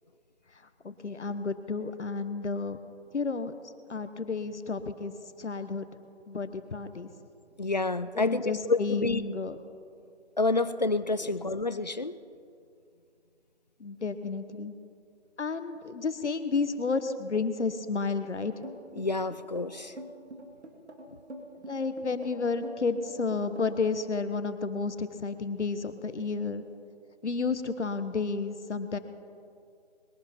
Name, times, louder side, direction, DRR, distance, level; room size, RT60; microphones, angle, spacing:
voice 1, 0.8-2.8 3.1-3.5 3.9-5.1 5.4-5.9 6.3-7.1 8.1-9.6 11.2-11.3 13.8-14.7 15.4-18.5 21.6-26.6 27.2-29.0, left 4 dB, 75° left, 11 dB, 1.3 m, -31 dB
voice 2, 7.6-9.2 10.4-12.2 19.0-19.9, left 3 dB, 40° left, 15 dB, 0.4 m, -28 dB
sound 1, 18.6-23.9, right 1 dB, 65° right, 2.5 m, -44 dB
21.5 x 11.5 x 4.5 m, 2.4 s
figure-of-eight pair, 165°, 35 cm